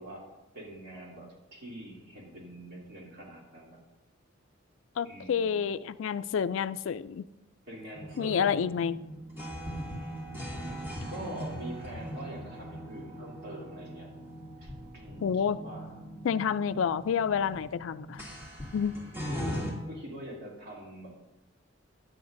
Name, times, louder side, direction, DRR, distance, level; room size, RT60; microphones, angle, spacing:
voice 1, 0.0-3.8 5.0-5.6 7.7-8.8 10.0-10.1 11.0-14.1 14.6-15.3 15.6-16.0 19.9-21.1, right 1 dB, 55° right, 2.8 m, -44 dB
voice 2, 5.0-7.3 8.2-8.9 15.2-15.6 16.2-18.2 18.7-19.0, left 7 dB, 70° left, 0.3 m, -29 dB
sound 1, 7.9-19.7, equal, 10° right, 2.3 m, -40 dB
15.5 x 10.0 x 2.6 m
head